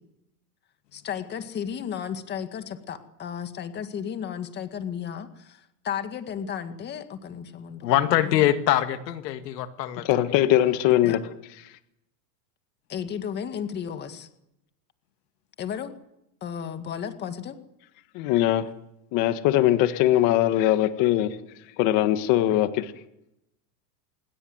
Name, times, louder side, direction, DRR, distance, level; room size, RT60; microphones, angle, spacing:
voice 1, 0.9-8.5 11.0-11.2 12.9-14.3 15.6-15.9 16.4-17.6, left 8 dB, 20° left, 1.9 m, -34 dB
voice 2, 7.8-10.2, left 12 dB, 85° left, 2.2 m, -23 dB
voice 3, 10.0-11.2 18.1-18.7 19.1-21.3 21.8-22.9, left 13 dB, 40° left, 1.7 m, -21 dB
26.5 x 21.5 x 7.9 m
supercardioid pair, 160°, 48 cm